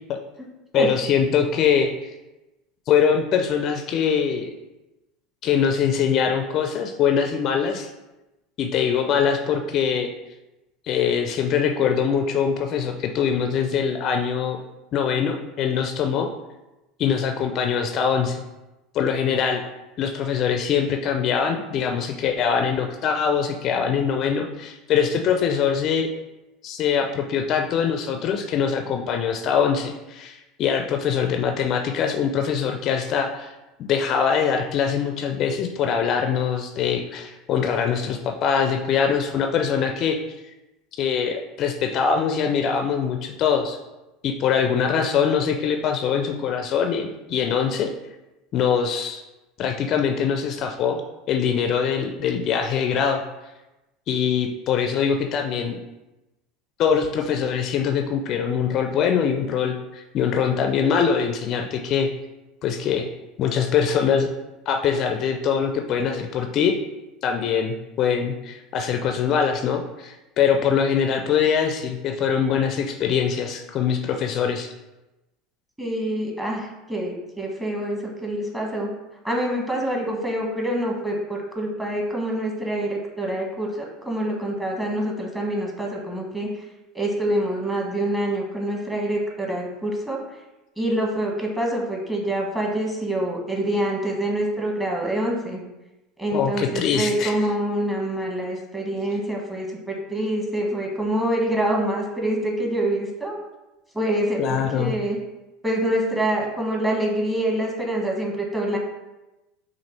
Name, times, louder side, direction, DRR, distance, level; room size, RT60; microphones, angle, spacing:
voice 1, 0.7-1.9 2.9-4.5 5.4-7.9 8.6-10.1 10.9-14.6 14.9-16.3 17.0-18.4 18.9-19.6 20.0-26.1 26.6-40.2 41.0-43.8 44.2-47.9 48.5-49.2 49.6-51.0 51.3-53.2 54.1-55.8 56.8-62.1 62.6-63.1 63.4-64.3 64.7-66.8 67.2-74.7 96.3-97.4 104.4-104.9, left 7 dB, 50° left, 5 dB, 0.4 m, -23 dB
voice 2, 75.8-78.9 79.2-86.5 86.9-90.2 90.8-95.6 96.2-103.4 103.9-105.2 105.6-108.8, right 1 dB, 10° right, -1 dB, 1.3 m, -26 dB
5.8 x 2.5 x 3.2 m, 1.0 s
hypercardioid pair, 75°, 0 cm